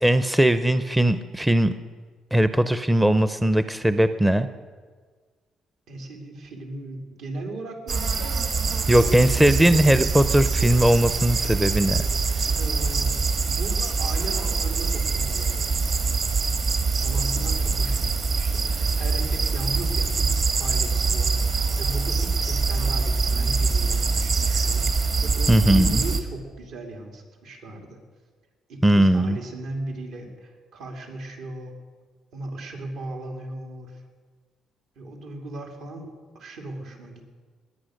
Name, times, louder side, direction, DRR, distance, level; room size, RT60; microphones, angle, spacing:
voice 1, 0.0-1.7 2.3-4.5 8.9-12.0 12.3-12.5 25.5-26.1 28.8-29.4, right 1 dB, 5° right, 11 dB, 0.5 m, -19 dB
voice 2, 5.9-8.4 8.9-9.8 12.5-15.8 17.0-28.0 28.7-31.7 32.3-34.0 35.0-37.3, right 2 dB, 75° right, 3 dB, 2.9 m, -37 dB
sound 1, 7.9-26.2, right 4 dB, 50° right, 1.7 m, -24 dB
20.5 x 8.8 x 6.5 m, 1.5 s
cardioid pair, 115°, 0 cm